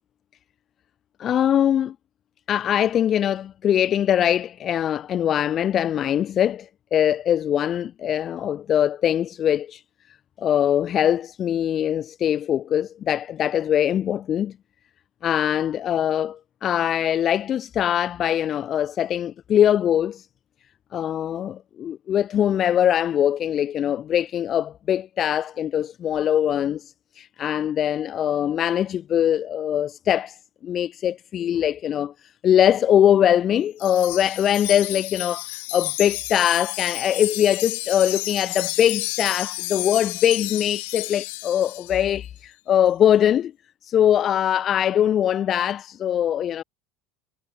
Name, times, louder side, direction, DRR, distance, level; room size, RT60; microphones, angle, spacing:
voice 1, 1.2-1.9 2.5-9.8 10.4-14.5 15.2-20.3 20.9-30.4 30.6-32.1 32.4-43.5 43.8-46.6, left 10 dB, 35° left, 0.5 m, -22 dB
Wind chime, 33.8-42.0, left 24 dB, 80° left, 2.0 m, -31 dB
cardioid pair, 145°, 0 cm